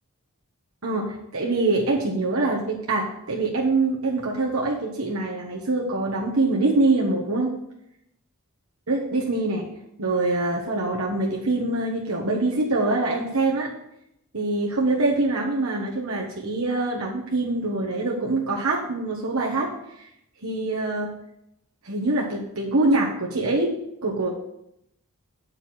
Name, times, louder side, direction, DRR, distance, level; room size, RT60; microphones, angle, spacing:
voice 1, 0.8-7.5 8.9-9.7 10.0-13.7 14.3-19.7 20.4-21.1 21.8-23.7 24.0-24.3, right 2 dB, 65° right, -3 dB, 1.4 m, -24 dB
7.8 x 5.3 x 6.3 m, 0.79 s
head